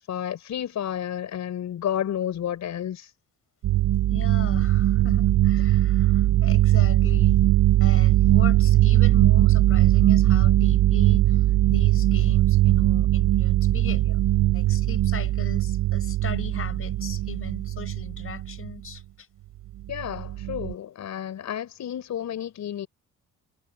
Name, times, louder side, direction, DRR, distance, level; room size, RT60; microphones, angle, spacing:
voice 1, 0.1-3.1 19.9-22.9, left 10 dB, 65° left, 5.8 m, -31 dB
sound 1, 3.6-18.7 19.9-20.7, right 14 dB, 65° right, 0.7 m, -20 dB
voice 2, 4.1-7.4 7.8-14.2 14.5-19.3, left 7 dB, 45° left, 6.4 m, -39 dB
cardioid pair, 90°, 30 cm